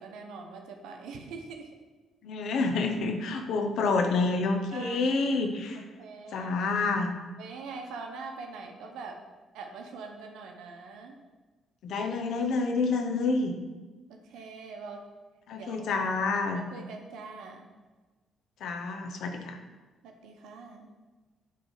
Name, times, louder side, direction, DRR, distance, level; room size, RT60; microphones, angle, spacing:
voice 1, 0.0-1.8 4.7-5.1 5.8-6.5 7.4-9.2 9.5-11.2 14.1-15.1 15.6-16.0 16.5-17.7 20.0-20.9, right 4 dB, 90° right, 3 dB, 0.9 m, -43 dB
voice 2, 2.2-5.8 6.3-7.1 11.8-13.5 15.5-16.6 18.6-19.6, left 3 dB, 75° left, 5 dB, 0.9 m, -28 dB
8.5 x 3.3 x 5.5 m, 1.3 s
cardioid pair, 90°, 0 cm